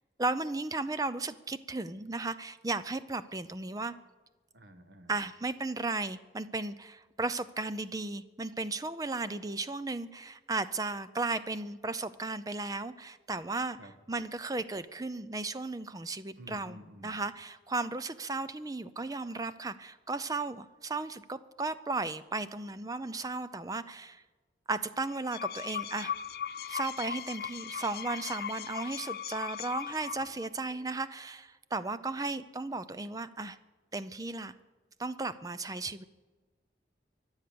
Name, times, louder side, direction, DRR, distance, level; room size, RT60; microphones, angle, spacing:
voice 1, 0.2-3.9 5.1-13.8 14.1-16.8 17.0-24.2 24.7-26.1 26.7-33.6 33.9-34.6 35.0-36.0, right 3 dB, 20° right, 13 dB, 0.5 m, -35 dB
voice 2, 4.5-5.2 13.8-13.9 16.4-17.2, equal, 80° right, 8 dB, 1.4 m, -51 dB
sound 1, 25.1-30.5, left 8 dB, 55° left, 0.5 m, -38 dB
24.0 x 8.1 x 6.9 m, 1.3 s
head